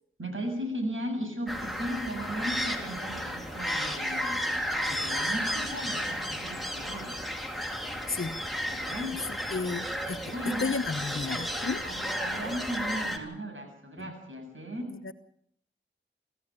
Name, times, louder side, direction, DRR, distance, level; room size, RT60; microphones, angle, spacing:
voice 1, 0.2-4.4 4.8-7.2 8.7-9.5 10.2-10.7 11.8-14.9, equal, 70° right, 4 dB, 7.7 m, -36 dB
sound 1, 1.5-13.2, equal, ahead, 3.7 m, -33 dB
voice 2, 8.1-8.4 9.5-11.8 14.0-14.1 14.9-15.1, left 4 dB, 75° left, 9 dB, 1.1 m, -33 dB
25.5 x 15.0 x 8.9 m, 0.68 s
wide cardioid pair, 45°, 21 cm